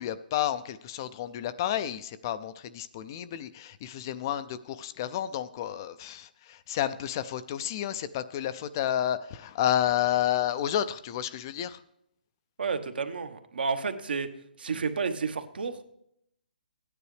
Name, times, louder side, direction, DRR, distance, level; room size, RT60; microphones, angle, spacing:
voice 1, 0.0-11.8, left 11 dB, 25° left, 13 dB, 0.3 m, -30 dB
voice 2, 12.6-14.3 14.6-15.8, right 5 dB, 75° right, 8 dB, 1.2 m, -31 dB
14.0 x 9.7 x 3.3 m, 0.75 s
hypercardioid pair, 165°, 5 cm